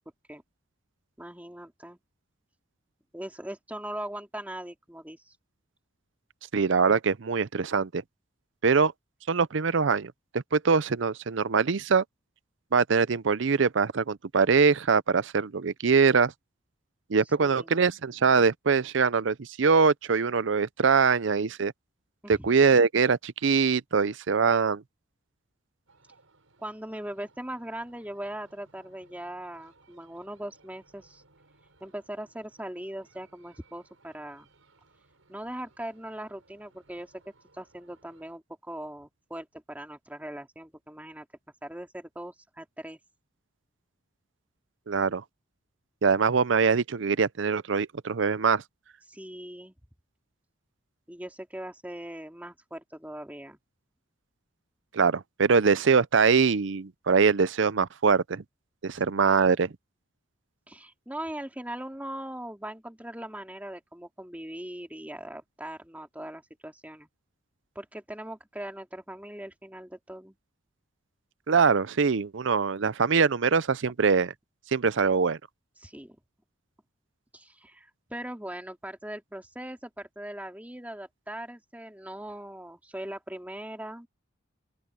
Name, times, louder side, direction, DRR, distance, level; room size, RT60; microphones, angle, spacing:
voice 1, 1.2-2.0 3.1-5.4 17.4-18.0 22.2-22.5 26.6-31.2 31.8-34.5 35.3-37.1 37.5-41.3 41.6-43.0 49.1-49.7 51.1-53.6 59.0-59.1 60.7-67.1 67.7-70.4 75.8-76.2 77.3-84.1, right 1 dB, 10° right, 2.7 m, -40 dB
voice 2, 6.5-8.0 8.6-8.9 9.3-12.0 12.7-16.3 17.1-21.7 22.3-24.8 44.9-45.2 46.0-48.6 54.9-58.4 58.8-59.7 71.5-74.3 74.7-75.4, right 5 dB, 65° right, 0.6 m, -23 dB
sound 1, 25.9-38.3, right 3 dB, 85° right, 5.6 m, -63 dB
open air
head